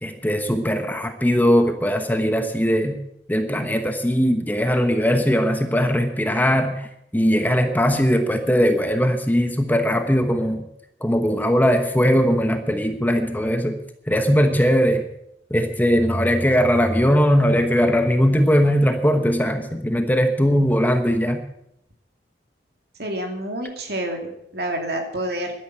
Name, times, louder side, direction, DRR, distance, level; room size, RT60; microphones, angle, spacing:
voice 1, 0.0-3.0 3.3-6.9 7.1-10.6 11.0-13.8 14.1-15.1 15.5-21.4, equal, 10° left, 6 dB, 1.1 m, -20 dB
voice 2, 23.0-25.5, right 1 dB, 65° right, 3 dB, 2.7 m, -28 dB
12.0 x 10.5 x 7.8 m, 0.77 s
head